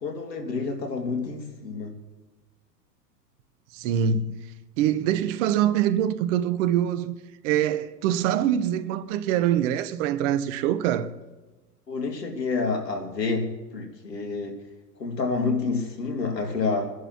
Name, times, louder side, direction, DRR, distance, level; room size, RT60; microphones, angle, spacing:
voice 1, 0.0-2.0 11.9-14.6 15.0-16.9, left 4 dB, 90° left, 2.3 m, -28 dB
voice 2, 3.7-4.3 4.8-7.2 7.4-11.1, right 10 dB, 50° right, 1.0 m, -24 dB
28.5 x 11.0 x 3.0 m
hypercardioid pair, 100°, 48 cm